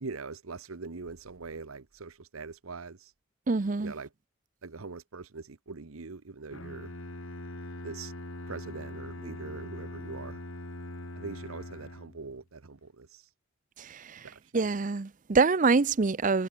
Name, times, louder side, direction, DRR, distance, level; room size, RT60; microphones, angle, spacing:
voice 1, 0.0-3.1 3.8-4.1 4.6-6.9 7.8-8.1 8.5-10.4 11.2-13.3 14.2-14.5, right 4 dB, 90° right, 1.0 m, -42 dB
voice 2, 3.5-3.9 13.8-14.2 14.5-16.5, right 4 dB, 40° right, 0.6 m, -25 dB
Bowed string instrument, 6.5-12.4, left 1 dB, 75° left, 2.6 m, -42 dB
head